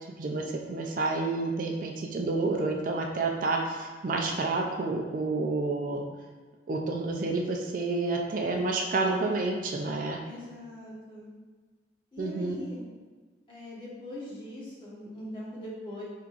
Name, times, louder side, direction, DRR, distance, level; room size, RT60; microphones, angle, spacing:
voice 1, 0.2-6.0 6.7-10.2 12.2-12.6, right 3 dB, 45° right, 1 dB, 0.4 m, -29 dB
voice 2, 10.2-11.3 12.1-12.8 13.5-16.0, left 1 dB, 25° left, -7 dB, 1.1 m, -41 dB
4.5 x 3.5 x 2.5 m, 1.4 s
head